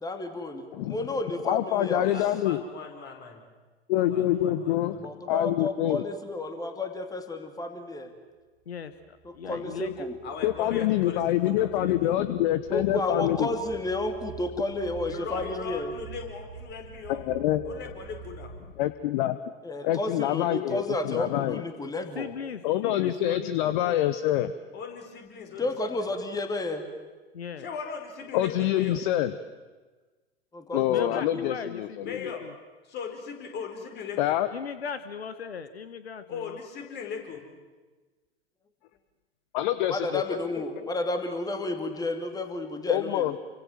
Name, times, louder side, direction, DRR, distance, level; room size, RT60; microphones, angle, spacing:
voice 1, 0.0-2.1 5.0-8.1 9.2-10.2 12.7-15.9 19.6-22.3 25.6-26.8 30.5-31.5 39.9-43.4, left 2 dB, 10° left, 7 dB, 2.6 m, -31 dB
voice 2, 1.4-2.6 3.9-5.0 5.3-6.1 10.4-13.5 17.1-17.8 18.8-19.4 19.8-21.6 22.6-24.5 28.3-29.3 30.7-32.2 34.2-34.5 39.5-40.2 40.6-40.7 42.9-43.4, left 13 dB, 50° left, 13 dB, 1.1 m, -26 dB
voice 3, 2.0-3.4 4.1-4.8 10.2-12.1 15.0-17.2 17.7-18.5 24.7-26.1 27.6-29.0 32.0-32.4 32.9-34.3 36.3-37.4, left 6 dB, 35° left, 3 dB, 5.2 m, -39 dB
voice 4, 8.6-10.1 10.7-10.8 22.1-24.0 27.3-27.7 30.9-32.5 34.5-36.6, left 6 dB, 75° left, 12 dB, 1.3 m, -38 dB
sound 1, 8.9-18.9, right 5 dB, 55° right, 3.5 m, -47 dB
29.0 x 25.0 x 7.5 m, 1.3 s
figure-of-eight pair, 90°, 31 cm